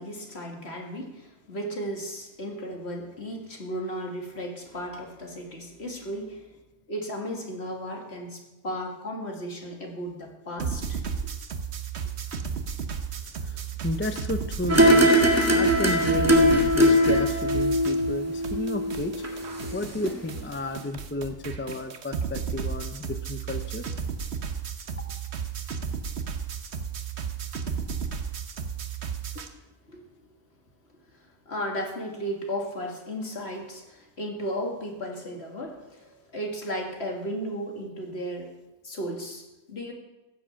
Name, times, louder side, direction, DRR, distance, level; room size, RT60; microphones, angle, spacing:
voice 1, 0.0-6.6 6.9-11.0 29.9-30.1 31.1-38.5 38.8-39.9, equal, 50° left, 1 dB, 2.4 m, -35 dB
sound 1, 10.6-18.2 18.4-29.5, right 6 dB, 55° right, 1.3 m, -33 dB
voice 2, 13.4-19.2 19.7-23.8, left 2 dB, 15° left, 9 dB, 0.4 m, -32 dB
sound 2, 14.7-19.8 20.0-20.1, equal, 10° right, 1.8 m, -21 dB
15.5 x 7.6 x 7.0 m, 1.0 s
omnidirectional pair, 1.4 m